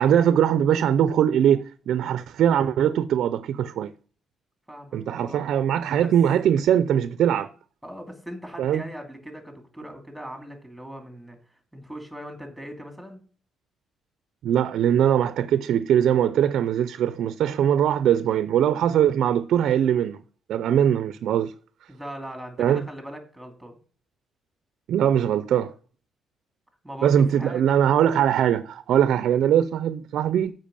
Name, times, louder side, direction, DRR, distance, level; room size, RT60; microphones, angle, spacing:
voice 1, 0.0-3.9 4.9-7.5 8.6-8.8 14.4-20.2 20.5-21.5 22.6-22.8 24.9-25.7 27.0-30.5, right 9 dB, 75° right, 0.5 m, -21 dB
voice 2, 4.7-5.5 6.0-6.1 7.8-11.4 11.7-13.2 21.9-23.8 26.8-27.8, equal, ahead, 2.6 m, -39 dB
7.4 x 5.4 x 6.8 m
cardioid pair, 90°, 0 cm